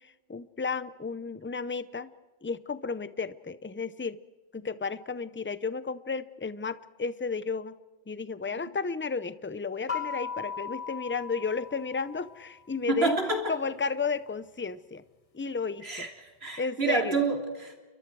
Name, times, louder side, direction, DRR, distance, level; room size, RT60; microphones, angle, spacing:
voice 1, 0.0-2.1 2.4-4.2 4.5-7.8 8.1-13.2 13.5-15.0 15.3-16.1 16.6-17.2, left 4 dB, 15° left, 15 dB, 0.5 m, -33 dB
sound 1, 9.9-12.6, left 6 dB, 30° left, 1.3 m, -37 dB
voice 2, 12.9-13.5 15.8-17.8, right 3 dB, 60° right, 4 dB, 3.4 m, -29 dB
29.5 x 23.0 x 4.7 m, 1.2 s
omnidirectional pair, 1.2 m